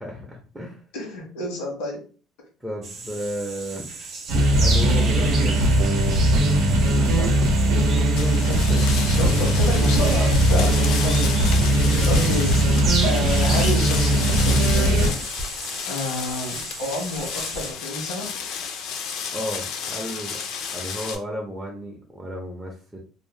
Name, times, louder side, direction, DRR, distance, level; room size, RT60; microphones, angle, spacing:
voice 1, 0.0-0.8 2.6-3.8 4.5-5.7 7.9-8.4 8.7-9.1 11.8-12.1 19.3-20.4 20.7-23.0, equal, 5° right, -1 dB, 0.5 m, -33 dB
voice 2, 0.9-2.1 7.0-7.3 8.4-8.6 9.1-11.4 12.1-12.6 13.0-15.2 15.8-18.3, left 1 dB, 90° left, 1 dB, 1.1 m, -30 dB
sound 1, 2.8-17.7, right 3 dB, 35° right, 0.8 m, -35 dB
sound 2, 4.3-15.1, right 1 dB, 75° right, 0.7 m, -19 dB
sound 3, 8.2-21.2, left 6 dB, 55° left, 0.4 m, -31 dB
2.6 x 2.0 x 3.1 m, 0.38 s
cardioid pair, 175°, 0 cm